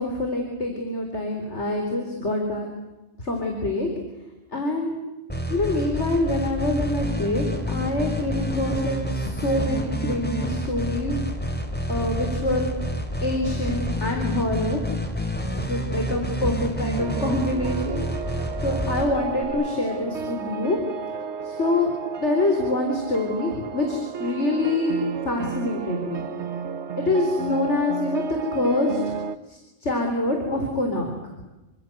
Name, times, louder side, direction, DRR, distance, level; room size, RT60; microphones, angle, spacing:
voice 1, 0.0-2.7 3.2-3.9 4.5-4.9 5.5-11.2 11.9-12.7 13.2-14.8 15.7-18.0 18.6-20.8 21.4-21.9 22.2-25.0 25.2-26.2 26.9-29.1 29.5-31.1, left 2 dB, 90° left, 3 dB, 4.5 m, -25 dB
sound 1, 5.3-19.4, equal, 10° left, 3.7 m, -28 dB
sound 2, 17.0-29.4, right 6 dB, 85° right, 1.4 m, -33 dB
28.5 x 26.0 x 8.0 m, 1.1 s
omnidirectional pair, 1.1 m